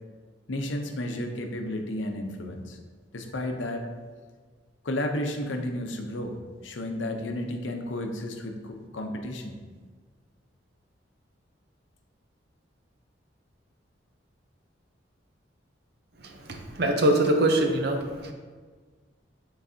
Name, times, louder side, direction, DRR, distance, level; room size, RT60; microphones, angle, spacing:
voice 1, 0.5-2.8 3.1-3.9 4.8-6.4 6.6-9.5, left 1 dB, 80° left, 4 dB, 0.7 m, -32 dB
voice 2, 16.2-18.3, right 1 dB, 60° right, 4 dB, 0.7 m, -24 dB
8.8 x 4.0 x 2.7 m, 1.5 s
head